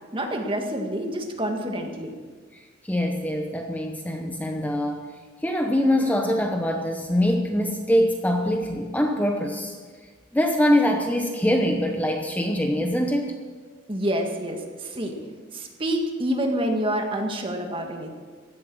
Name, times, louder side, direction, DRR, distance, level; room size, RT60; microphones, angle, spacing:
voice 1, 0.1-2.1 13.9-15.2 15.5-18.1, right 1 dB, 30° right, 3 dB, 1.8 m, -27 dB
voice 2, 2.5-5.1 5.4-9.7 10.3-13.3, equal, 10° left, 3 dB, 0.9 m, -23 dB
16.0 x 11.0 x 6.2 m, 1.5 s
head